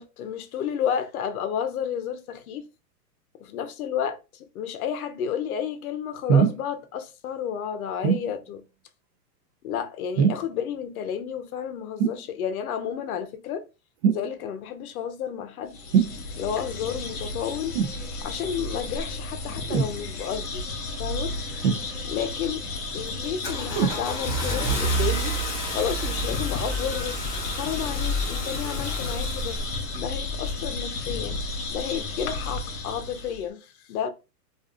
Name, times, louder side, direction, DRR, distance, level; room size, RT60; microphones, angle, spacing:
voice 1, 0.0-2.7 3.4-8.6 9.6-13.6 14.0-15.8 16.4-17.8 18.2-20.7 21.0-21.3 22.0-22.6 22.9-25.4 25.7-27.2 27.5-29.6 29.9-31.4 31.7-34.1, left 8 dB, 60° left, 0.6 m, -31 dB
sound 1, 6.3-6.6 8.0-8.3 10.2-10.5 12.0-12.2 14.0-14.3 15.9-16.2 17.7-18.0 19.7-20.0 21.6-22.2 23.7-24.0 24.8-24.9, right 7 dB, 40° right, 0.5 m, -22 dB
sound 2, 15.7-33.5, left 3 dB, 45° left, 1.0 m, -33 dB
Car / Engine starting, 22.3-22.6 23.1-30.0, right 1 dB, 10° left, 0.4 m, -30 dB
2.5 x 2.4 x 2.4 m
hypercardioid pair, 140°, 49 cm